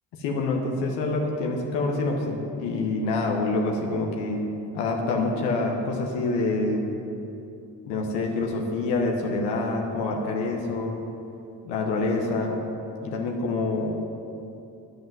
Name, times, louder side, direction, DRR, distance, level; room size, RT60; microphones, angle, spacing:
voice 1, 0.2-6.9 7.8-11.0 11.6-12.6 13.0-13.9, left 3 dB, 85° left, 1 dB, 1.3 m, -26 dB
9.6 x 8.4 x 7.7 m, 2.8 s
hypercardioid pair, 55°, 41 cm